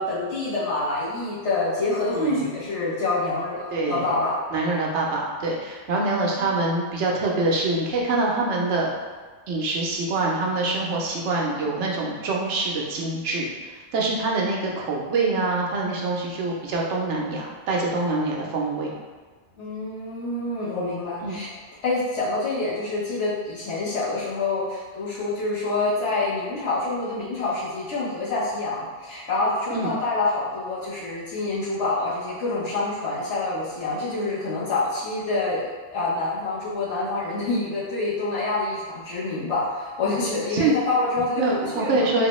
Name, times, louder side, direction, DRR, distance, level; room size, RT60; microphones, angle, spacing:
voice 1, 0.0-4.3 6.1-6.5 19.6-21.5 21.8-35.6 35.9-41.9, left 2 dB, 80° left, -8 dB, 1.3 m, -27 dB
voice 2, 2.1-2.5 3.7-4.0 4.5-8.9 9.5-18.9 21.2-21.4 29.7-29.9 40.5-40.7 41.4-42.3, right 3 dB, 80° right, -2 dB, 0.9 m, -25 dB
3.4 x 2.2 x 3.0 m, 1.4 s
omnidirectional pair, 1.2 m